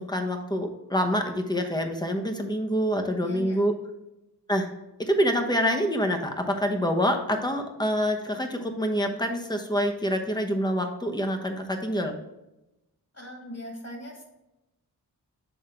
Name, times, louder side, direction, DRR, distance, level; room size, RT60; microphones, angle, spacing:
voice 1, 0.0-3.8 4.5-4.7 5.0-12.1, equal, 10° left, 4 dB, 1.0 m, -26 dB
voice 2, 3.2-3.6 13.1-14.2, left 1 dB, 35° left, 0 dB, 2.3 m, -40 dB
8.0 x 3.6 x 4.4 m, 0.94 s
cardioid pair, 40°, 41 cm